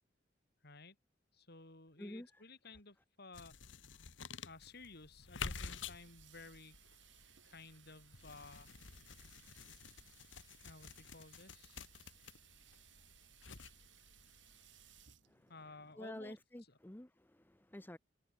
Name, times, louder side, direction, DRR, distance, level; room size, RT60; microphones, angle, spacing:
voice 1, 0.6-1.0 1.3-3.6 4.5-6.8 7.4-8.7 10.6-11.8 15.5-16.4 16.7-16.8, left 3 dB, 60° left, 5.7 m, -55 dB
sound 1, 3.3-15.1, left 5 dB, 85° left, 1.7 m, -51 dB
Water tap faucet / Sink (filling or washing), 5.6-16.5, right 11 dB, 70° right, 2.1 m, -65 dB
voice 2, 16.0-18.0, left 1 dB, 10° left, 0.7 m, -49 dB
head